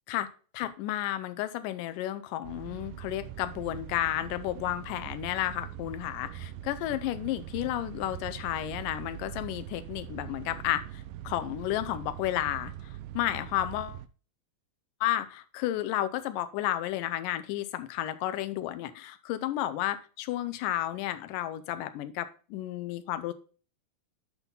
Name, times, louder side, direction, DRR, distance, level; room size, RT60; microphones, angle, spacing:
voice 1, 0.5-12.7 13.1-14.0 15.0-23.3, left 13 dB, 80° left, 11 dB, 2.2 m, -32 dB
sound 1, 2.4-14.1, right 13 dB, 80° right, 2.2 m, -42 dB
8.2 x 5.6 x 3.8 m, 0.38 s
omnidirectional pair, 4.1 m